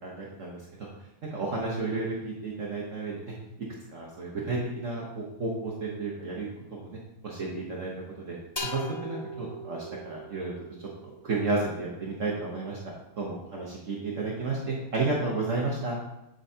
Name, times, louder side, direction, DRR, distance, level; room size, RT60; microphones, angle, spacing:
voice 1, 0.0-0.9 1.2-3.3 3.9-7.9 8.2-8.4 8.6-10.5 10.8-10.9 11.2-12.8 13.2-16.0, right 3 dB, 50° right, -3 dB, 1.4 m, -32 dB
sound 1, 8.6-12.2, equal, 35° left, 0.4 m, -40 dB
7.8 x 7.8 x 2.8 m, 0.88 s
omnidirectional pair, 1.8 m